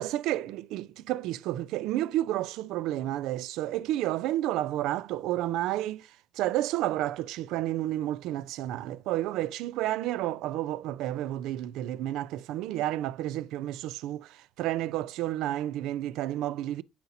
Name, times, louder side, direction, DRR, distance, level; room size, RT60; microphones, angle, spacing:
voice 1, 0.0-6.1 6.4-16.8, right 14 dB, 85° right, 0.3 m, -31 dB
9.6 x 4.3 x 2.7 m
cardioid pair, 160°, 0 cm